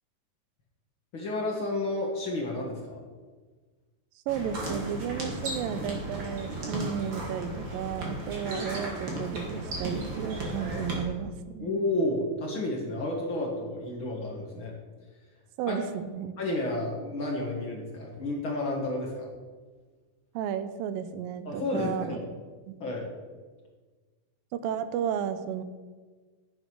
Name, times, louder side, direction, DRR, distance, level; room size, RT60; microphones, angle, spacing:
voice 1, 1.1-3.0 11.6-14.7 15.7-15.8 16.4-19.3 21.5-22.2 22.8-23.1, left 2 dB, 45° left, -1 dB, 1.9 m, -31 dB
sound 1, 4.3-11.0, right 1 dB, 40° right, 2.5 m, -35 dB
voice 2, 4.3-11.7 15.6-16.3 20.3-22.2 22.7-22.8 24.5-25.6, right 8 dB, 90° right, 12 dB, 2.5 m, -33 dB
10.5 x 7.6 x 6.2 m, 1.4 s
omnidirectional pair, 3.9 m